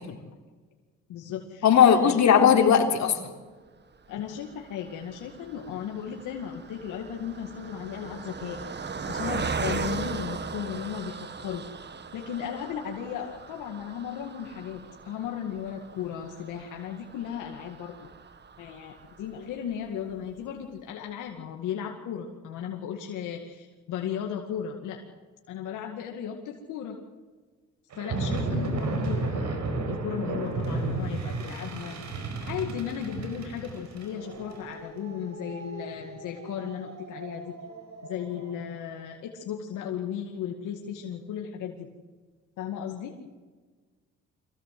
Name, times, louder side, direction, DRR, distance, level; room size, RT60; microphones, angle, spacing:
voice 1, 1.1-2.3 4.1-11.6 12.1-18.0 18.6-25.0 25.5-27.0 28.0-29.6 29.9-32.0 32.4-37.5 38.1-41.9 42.6-43.2, left 8 dB, 90° left, 2 dB, 2.2 m, -36 dB
voice 2, 1.6-3.2, left 8 dB, 65° left, 3 dB, 3.6 m, -18 dB
Car passing by, 4.1-19.6 20.1-20.2 20.4-20.6, right 5 dB, 35° right, 1.5 m, -38 dB
sound 1, 27.9-38.5, right 3 dB, 70° right, 4.9 m, -33 dB
24.0 x 17.0 x 7.8 m, 1.4 s
cardioid pair, 90°, 30 cm